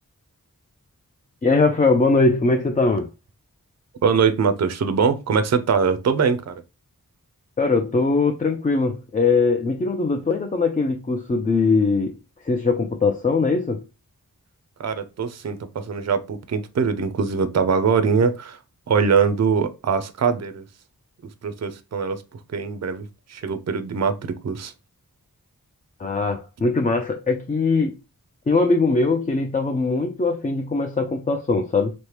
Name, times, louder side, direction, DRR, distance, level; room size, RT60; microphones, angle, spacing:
voice 1, 1.4-3.1 7.6-12.1 12.4-13.8 26.0-28.0 28.5-31.9, left 3 dB, 25° left, 0.3 m, -21 dB
voice 2, 4.0-6.5 14.8-18.6 18.9-20.6 21.4-22.2 22.5-24.7, right 6 dB, 45° right, 0.4 m, -22 dB
3.2 x 2.1 x 2.8 m
wide cardioid pair, 45°, 37 cm